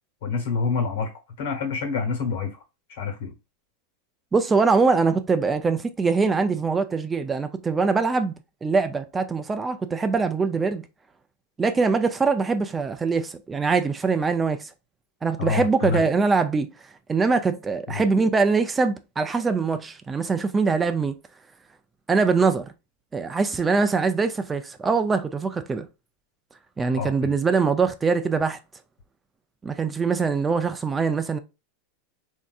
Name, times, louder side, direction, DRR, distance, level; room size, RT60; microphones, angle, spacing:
voice 1, 0.2-1.1 1.4-2.5 3.0-3.3 15.4-16.1 17.9-18.0 26.9-27.3, left 5 dB, 75° left, 1.2 m, -27 dB
voice 2, 4.3-8.3 8.6-10.8 11.6-14.7 15.2-16.7 17.1-21.2 22.1-22.7 23.1-25.9 26.8-28.6 29.6-31.4, right 4 dB, 15° right, 0.3 m, -23 dB
3.4 x 2.7 x 2.3 m
supercardioid pair, 130°, 0 cm